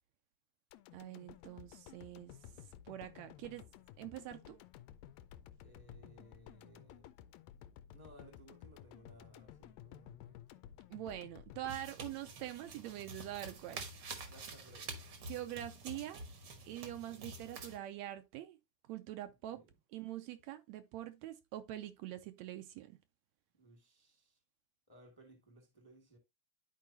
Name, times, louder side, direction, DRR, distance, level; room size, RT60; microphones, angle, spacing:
sound 1, 0.7-12.9 13.3-13.4, left 11 dB, 80° left, 1.7 m, -55 dB
voice 1, 0.9-2.4 2.9-3.6 4.0-4.6 10.9-13.9 15.3-16.2 16.7-18.6 18.9-19.6 19.9-23.0, right 13 dB, 80° right, 1.8 m, -44 dB
voice 2, 5.6-7.1 7.9-10.6 14.2-15.1 17.1-17.3 19.3-19.7 23.5-24.4 24.9-26.2, right 1 dB, 10° left, 1.1 m, -61 dB
sound 2, 11.7-17.8, right 3 dB, 55° right, 1.3 m, -48 dB
11.0 x 4.6 x 2.7 m
omnidirectional pair, 3.3 m